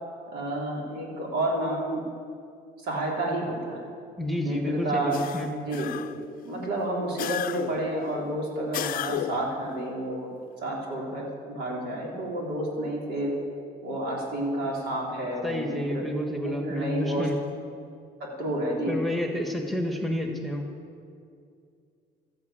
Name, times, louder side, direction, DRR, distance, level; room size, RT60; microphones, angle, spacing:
voice 1, 0.3-2.0 2.8-3.9 4.4-5.2 5.6-5.9 6.4-10.3 10.6-13.3 13.8-16.0 16.4-17.3 18.2-19.0, right 1 dB, 80° right, -2 dB, 3.8 m, -30 dB
voice 2, 4.2-5.5 15.4-17.4 18.9-20.6, left 1 dB, ahead, 3 dB, 1.5 m, -29 dB
sound 1, 5.1-6.3 7.2-7.9 8.7-9.6, left 12 dB, 55° left, 0.5 m, -33 dB
13.5 x 8.3 x 8.6 m, 2.4 s
cardioid pair, 110°, 17 cm